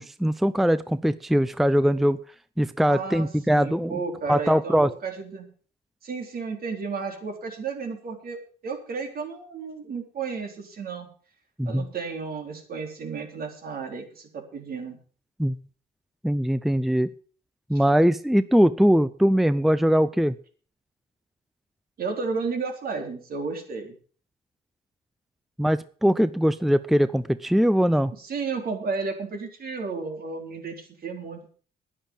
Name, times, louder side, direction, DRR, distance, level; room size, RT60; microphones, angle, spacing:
voice 1, 0.0-2.2 2.6-4.0 4.3-4.9 11.6-11.9 15.4-15.6 16.2-17.1 17.7-20.3 25.6-28.1, equal, ahead, 15 dB, 0.6 m, -21 dB
voice 2, 2.9-5.5 6.0-11.1 11.6-15.0 17.7-17.8 22.0-24.0 28.1-31.6, right 4 dB, 60° right, 3 dB, 4.0 m, -33 dB
10.5 x 10.0 x 6.9 m, 0.42 s
cardioid pair, 80°, 18 cm